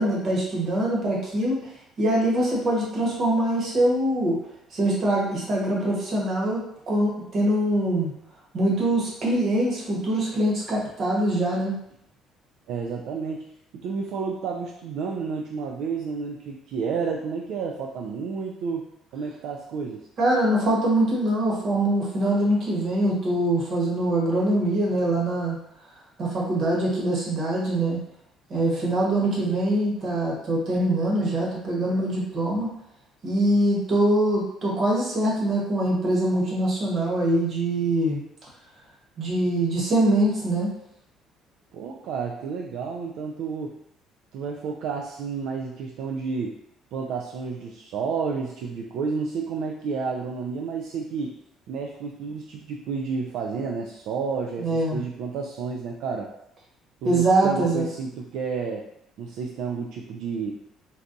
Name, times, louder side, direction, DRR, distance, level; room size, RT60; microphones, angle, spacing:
voice 1, 0.0-1.6 2.0-4.4 4.7-8.1 8.5-11.8 20.2-25.6 26.2-28.0 28.5-32.7 33.2-38.2 39.2-40.7 54.6-55.0 57.0-57.9, right 1 dB, 45° right, -4 dB, 1.1 m, -23 dB
voice 2, 12.7-13.5 13.7-18.8 19.1-20.1 41.7-43.8 44.3-46.6 46.9-51.4 51.7-56.3 57.0-58.9 59.2-60.6, right 5 dB, 70° right, 0 dB, 0.3 m, -31 dB
3.9 x 2.3 x 2.6 m, 0.77 s
cardioid pair, 130°, 0 cm